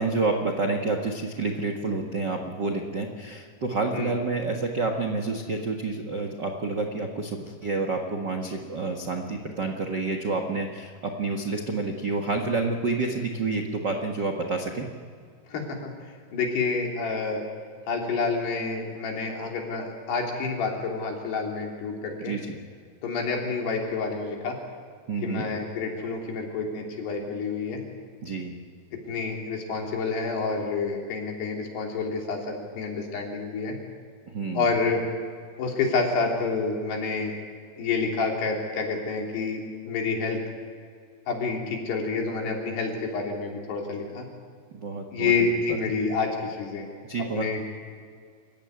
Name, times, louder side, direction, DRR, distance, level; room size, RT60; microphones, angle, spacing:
voice 1, 0.0-14.9 22.2-22.5 25.1-25.5 28.2-28.5 34.3-34.7 44.7-45.9 47.1-47.5, right 3 dB, 60° right, 3 dB, 1.1 m, -29 dB
voice 2, 15.5-15.9 16.3-17.4 17.9-22.3 23.0-24.6 25.2-27.8 29.1-33.8 34.6-35.0 35.6-37.4 37.8-40.4 41.3-44.3 45.1-46.9 47.3-47.6, left 4 dB, 80° left, 0 dB, 5.4 m, -28 dB
27.0 x 15.5 x 9.6 m, 2.1 s
omnidirectional pair, 4.7 m